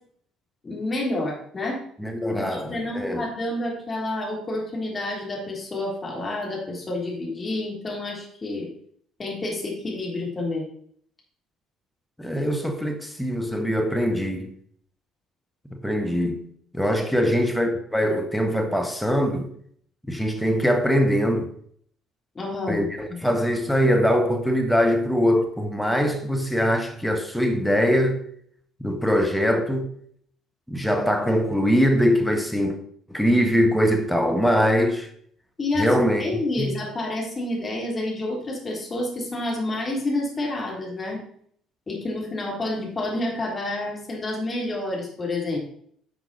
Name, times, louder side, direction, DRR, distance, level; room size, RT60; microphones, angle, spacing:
voice 1, 0.6-1.8 2.4-8.7 9.2-10.7 22.3-22.9 35.6-41.2 41.9-45.6, left 2 dB, 30° left, 3.3 m, -29 dB
voice 2, 2.0-3.2 12.2-14.5 15.7-16.4 16.7-19.5 20.1-21.5 22.7-28.2 28.8-29.9 30.7-32.8 33.1-35.1 35.8-36.3 36.6-36.7, equal, ahead, 1.3 m, -22 dB
10.5 x 5.9 x 4.1 m
figure-of-eight pair, 50°, 0 cm